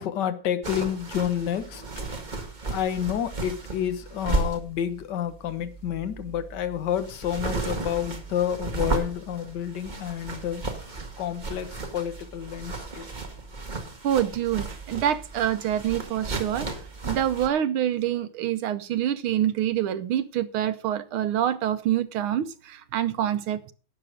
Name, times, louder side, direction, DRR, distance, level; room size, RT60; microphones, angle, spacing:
voice 1, 0.0-1.8 2.7-10.6 11.2-13.1, left 10 dB, 55° left, 1.6 m, -29 dB
sound 1, 0.6-17.5, right 3 dB, 25° right, 1.6 m, -34 dB
voice 2, 14.0-16.7 17.0-23.7, right 11 dB, 75° right, 1.7 m, -26 dB
12.0 x 8.7 x 5.0 m
omnidirectional pair, 2.4 m